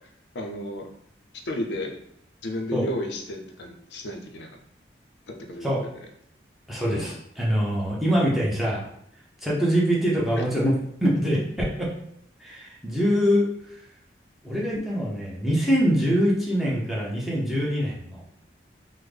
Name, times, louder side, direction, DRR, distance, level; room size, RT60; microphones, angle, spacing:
voice 1, 0.3-0.9 1.4-2.0 2.4-4.5 5.3-5.9 6.8-7.2 10.4-10.5, left 1 dB, 80° left, 3 dB, 0.5 m, -33 dB
voice 2, 6.7-8.8 9.4-10.7 11.0-11.9 12.4-13.5 14.4-18.2, equal, ahead, -6 dB, 0.6 m, -24 dB
3.6 x 2.0 x 3.3 m, 0.72 s
head